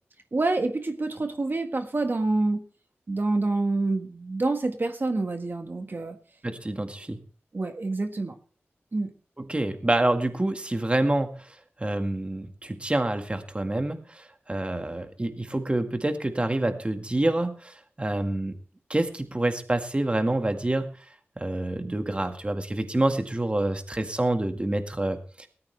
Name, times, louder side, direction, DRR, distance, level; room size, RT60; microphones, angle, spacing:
voice 1, 0.3-2.6 3.1-6.2 7.5-8.3 8.9-9.1, right 2 dB, 50° right, 6 dB, 1.6 m, -27 dB
voice 2, 6.4-7.2 9.4-18.6 18.9-21.0 21.4-25.5, right 1 dB, 25° right, 6 dB, 1.9 m, -27 dB
18.5 x 13.5 x 3.4 m, 0.39 s
wide cardioid pair, 75°, 4 cm